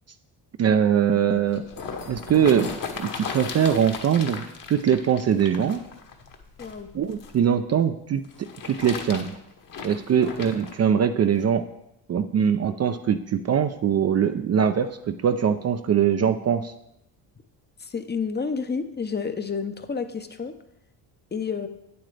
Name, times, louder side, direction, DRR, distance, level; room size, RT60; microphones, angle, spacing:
voice 1, 0.6-1.6 2.1-5.8 6.9-8.2 8.6-9.3 9.8-11.7 12.1-16.7, right 8 dB, 35° right, 9 dB, 0.5 m, -22 dB
sound 1, 1.3-7.4 8.2-10.8 11.4-11.5, left 5 dB, 45° left, 1.2 m, -36 dB
voice 2, 17.8-20.5 21.3-21.7, left 5 dB, 25° left, 9 dB, 0.7 m, -30 dB
8.7 x 7.8 x 3.3 m, 0.82 s
supercardioid pair, 70°, 44 cm